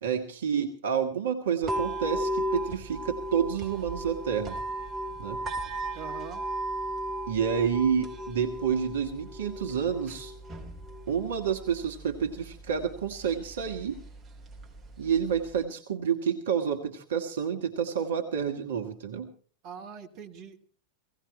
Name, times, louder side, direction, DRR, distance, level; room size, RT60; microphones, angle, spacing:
voice 1, 0.0-4.6 5.2-5.4 7.3-10.3 11.1-14.0 15.0-19.3, right 7 dB, 60° right, 5 dB, 1.4 m, -29 dB
sound 1, 1.6-15.6, right 1 dB, 20° right, 3.1 m, -36 dB
voice 2, 5.9-6.4 19.6-20.6, right 7 dB, 40° right, 3 dB, 1.8 m, -42 dB
17.5 x 16.0 x 4.3 m, 0.43 s
figure-of-eight pair, 90°, 0 cm